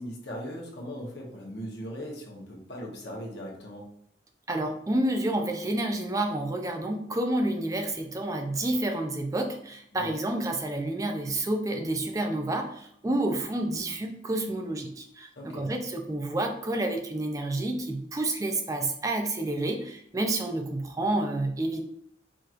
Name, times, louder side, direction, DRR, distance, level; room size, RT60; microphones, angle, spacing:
voice 1, 0.0-3.9 9.9-10.2 15.4-15.7, equal, 65° left, -1 dB, 1.1 m, -39 dB
voice 2, 4.5-21.8, right 1 dB, 20° right, 4 dB, 0.4 m, -29 dB
4.9 x 3.0 x 2.5 m, 0.69 s
head